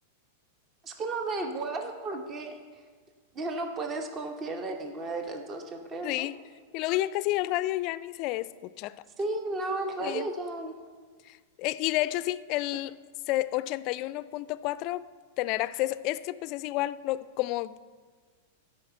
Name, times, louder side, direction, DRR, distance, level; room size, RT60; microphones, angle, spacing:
voice 1, 0.8-2.6 3.3-6.3 9.2-10.7, right 2 dB, 30° right, 1.1 m, -33 dB
voice 2, 6.0-6.4 6.7-9.0 10.0-10.3 11.3-13.0 13.3-15.1 15.4-17.8, left 16 dB, 50° left, 0.3 m, -30 dB
11.5 x 5.3 x 6.9 m
hypercardioid pair, 105°, 0 cm